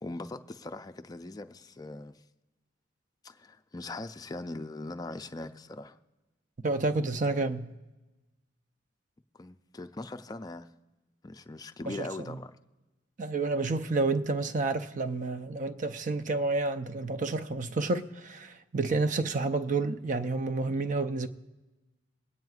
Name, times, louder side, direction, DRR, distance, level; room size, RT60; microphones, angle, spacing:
voice 1, 0.0-2.2 3.2-6.0 9.3-10.7 11.2-12.5, left 2 dB, 20° left, 0.4 m, -41 dB
voice 2, 6.6-7.7 11.9-12.1 13.2-21.3, right 3 dB, 40° right, 0.5 m, -30 dB
24.0 x 9.2 x 2.4 m
head